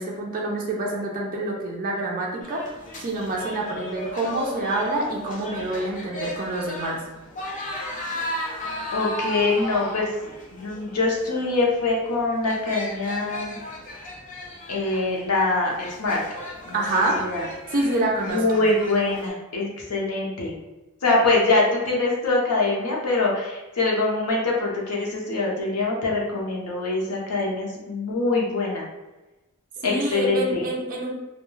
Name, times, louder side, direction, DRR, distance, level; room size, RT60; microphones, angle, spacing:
voice 1, 0.0-2.6 3.0-7.0 16.7-17.2 17.7-18.7 29.8-31.1, right 2 dB, 40° right, -2 dB, 0.4 m, -27 dB
sound 1, 2.4-19.3, left 1 dB, 35° left, 0.5 m, -36 dB
voice 2, 8.9-10.1 10.5-13.6 14.7-16.2 16.7-17.4 18.3-20.5 21.0-28.8 29.8-30.6, left 3 dB, 80° left, -2 dB, 0.7 m, -24 dB
2.2 x 2.2 x 3.0 m, 1.1 s
head